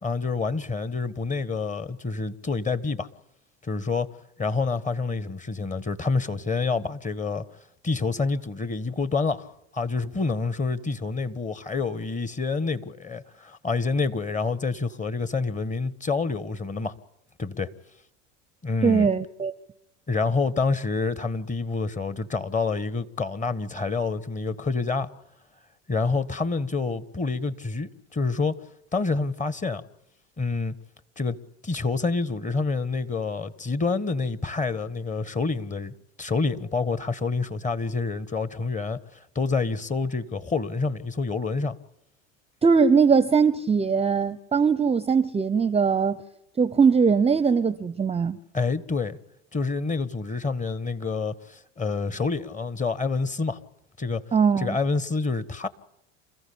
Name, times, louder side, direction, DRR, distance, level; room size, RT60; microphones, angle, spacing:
voice 1, 0.0-3.1 3.6-4.1 4.4-7.4 7.8-9.5 9.7-16.9 17.4-17.7 18.6-19.1 20.1-25.1 25.9-28.6 28.9-29.8 30.4-30.7 31.2-31.4 31.6-39.0 39.3-41.8 48.5-49.2 49.5-53.6 54.0-54.2 54.6-55.7, left 4 dB, 20° left, 1.6 m, -27 dB
voice 2, 18.8-19.5 42.6-46.2 46.6-48.4 54.3-54.8, right 5 dB, 15° right, 0.8 m, -21 dB
28.0 x 15.0 x 8.7 m
hypercardioid pair, 85°, 37 cm